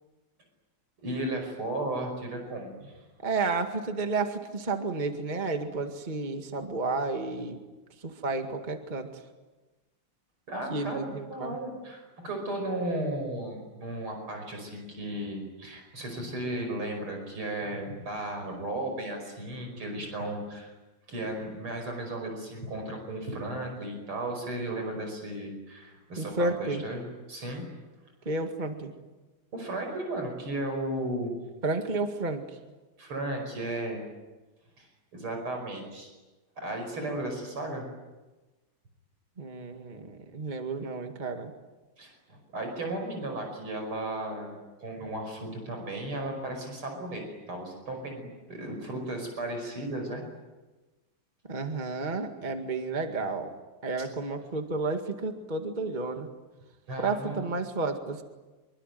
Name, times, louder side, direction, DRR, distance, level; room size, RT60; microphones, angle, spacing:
voice 1, 1.0-2.9 10.5-11.0 11.3-20.7 21.1-27.7 29.5-31.3 33.0-34.0 34.8-36.1 36.6-37.8 42.0-47.2 47.5-50.2 56.9-57.4, right 1 dB, 70° right, 3 dB, 6.3 m, -35 dB
voice 2, 3.2-7.6 8.0-9.1 10.7-11.6 26.2-26.8 28.3-28.9 31.6-32.6 39.4-41.5 51.5-53.5 53.8-56.3 57.0-58.2, right 3 dB, 20° right, 5 dB, 2.0 m, -31 dB
26.5 x 23.5 x 9.3 m, 1.2 s
omnidirectional pair, 2.4 m